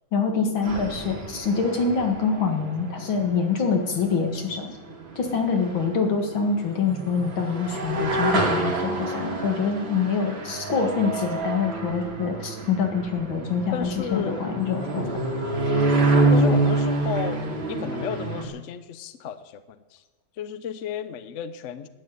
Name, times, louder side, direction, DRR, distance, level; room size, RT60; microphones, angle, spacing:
voice 1, 0.1-4.7 5.2-15.1, left 5 dB, 80° left, 4 dB, 2.7 m, -25 dB
sound 1, 0.6-18.5, right 2 dB, 75° right, 3.2 m, -27 dB
voice 2, 13.7-15.2 16.3-20.0 20.4-21.9, left 8 dB, 55° left, 12 dB, 0.8 m, -34 dB
11.5 x 9.9 x 8.1 m, 1.2 s
omnidirectional pair, 2.1 m